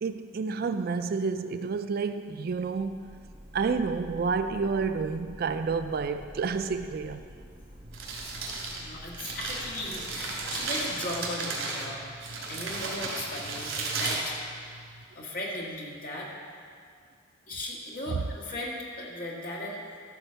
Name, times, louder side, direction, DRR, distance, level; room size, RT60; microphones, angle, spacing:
voice 1, 0.0-3.1 3.5-7.2 18.1-18.2, right 5 dB, 45° right, 10 dB, 0.3 m, -29 dB
sound 1, 2.4-11.7, equal, 25° right, 0.9 m, -49 dB
Crumpling crinkling, 7.7-15.0, right 3 dB, 80° right, 2.5 m, -34 dB
voice 2, 8.6-14.4 15.1-16.3 17.5-19.8, left 1 dB, 45° left, -3 dB, 1.8 m, -37 dB
13.0 x 4.5 x 6.7 m, 2.2 s
head